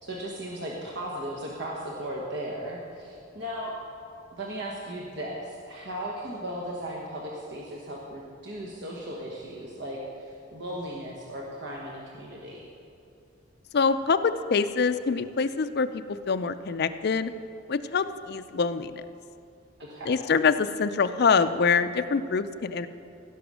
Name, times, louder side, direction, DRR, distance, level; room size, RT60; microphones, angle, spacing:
voice 1, 0.0-3.7 4.3-12.6 19.8-20.2, right 1 dB, 60° right, -3 dB, 1.2 m, -36 dB
voice 2, 13.7-17.3 17.7-19.0 20.1-22.9, left 5 dB, 55° left, 10 dB, 0.4 m, -25 dB
16.0 x 6.1 x 6.2 m, 2.6 s
head